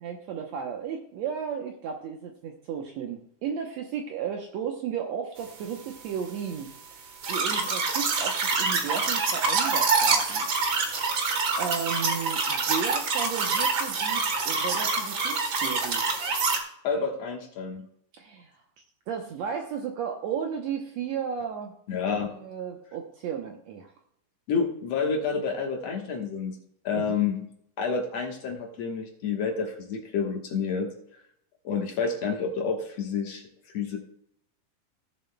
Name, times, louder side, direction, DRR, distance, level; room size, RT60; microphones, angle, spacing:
voice 1, 0.0-6.7 7.3-10.5 10.8-16.0 18.1-18.5 19.1-21.7 22.2-23.9 26.9-27.2, right 7 dB, 85° right, 2 dB, 1.5 m, -34 dB
sound 1, 7.2-16.6, right 4 dB, 70° right, 1.1 m, -26 dB
voice 2, 16.8-17.9 21.9-22.3 24.5-26.6 26.8-27.5 27.8-30.9 31.6-33.4 33.7-34.0, left 5 dB, 60° left, 2 dB, 1.9 m, -29 dB
17.5 x 7.2 x 2.2 m, 0.71 s
omnidirectional pair, 4.2 m